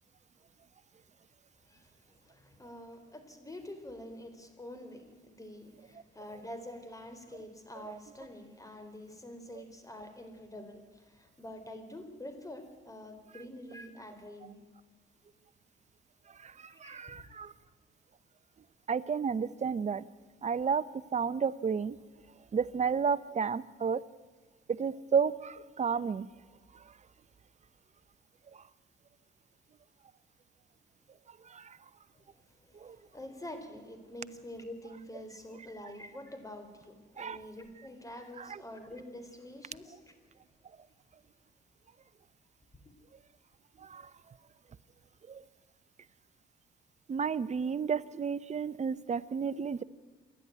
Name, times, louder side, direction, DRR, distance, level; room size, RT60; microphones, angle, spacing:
voice 1, 1.6-14.6 16.7-17.3 32.1-32.2 32.6-40.2, left 1 dB, 15° left, 8 dB, 4.1 m, -47 dB
voice 2, 16.4-17.5 18.9-20.0 20.4-20.8 21.1-22.0 22.5-24.0 24.7-26.3 31.5-31.8 32.8-33.0 37.2-37.4 38.4-38.6 43.8-44.1 45.3-45.4 47.1-49.8, right 6 dB, 35° right, 16 dB, 0.8 m, -32 dB
28.0 x 11.5 x 9.5 m, 1.4 s
cardioid pair, 90°, 20 cm